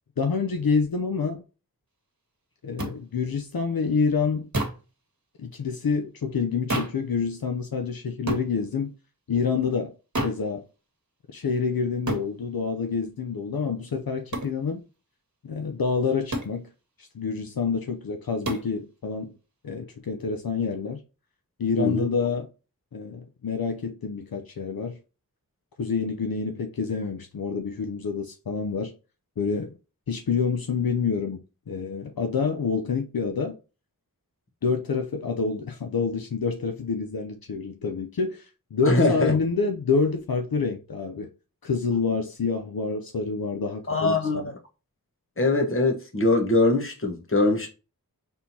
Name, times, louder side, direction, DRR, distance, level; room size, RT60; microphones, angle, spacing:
voice 1, 0.2-1.4 2.6-4.5 5.4-8.9 9.3-9.9 10.2-10.6 11.3-14.8 15.4-16.7 17.0-19.4 19.6-21.0 21.6-22.5 22.9-25.0 25.8-28.9 29.4-29.8 30.1-33.6 34.6-41.3 41.6-44.5, left 5 dB, 70° left, 0.6 m, -27 dB
sound 1, 2.8-3.0 4.5-4.9 6.7-7.0 8.3-8.5 10.1-10.4 12.1-12.3 14.3-14.6 16.3-16.6 18.4-18.7, right 1 dB, 50° right, 1.4 m, -29 dB
voice 2, 21.8-22.1 38.8-39.3 43.9-44.6 45.4-47.7, left 2 dB, 35° left, 1.3 m, -22 dB
4.2 x 3.6 x 2.8 m
wide cardioid pair, 60°, 37 cm